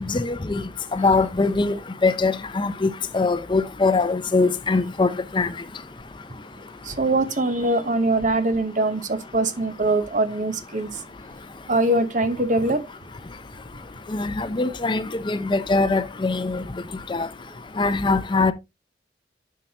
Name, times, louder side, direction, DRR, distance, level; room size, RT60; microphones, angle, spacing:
voice 1, 0.1-0.6 0.9-5.5 14.1-16.6 17.1-17.3 17.8-18.5, left 3 dB, 25° left, 0.5 m, -22 dB
voice 2, 6.5-11.0 11.7-12.9, right 2 dB, 45° right, 0.9 m, -23 dB
9.0 x 5.7 x 2.8 m
head